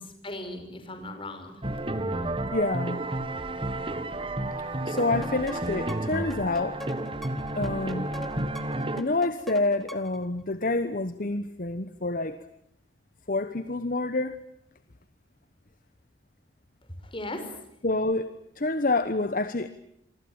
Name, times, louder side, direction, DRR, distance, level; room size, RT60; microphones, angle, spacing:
voice 1, 0.0-1.6 17.0-17.5, left 1 dB, 30° left, 7 dB, 5.5 m, -38 dB
sound 1, 1.6-9.0, right 1 dB, 30° right, 1.8 m, -31 dB
voice 2, 2.5-3.0 4.6-6.8 7.5-8.1 9.0-12.4 13.3-14.4 17.8-19.7, left 2 dB, 50° left, 12 dB, 1.1 m, -28 dB
sound 2, 5.0-10.3, equal, ahead, 1.9 m, -44 dB
27.5 x 24.5 x 8.9 m, 0.75 s
head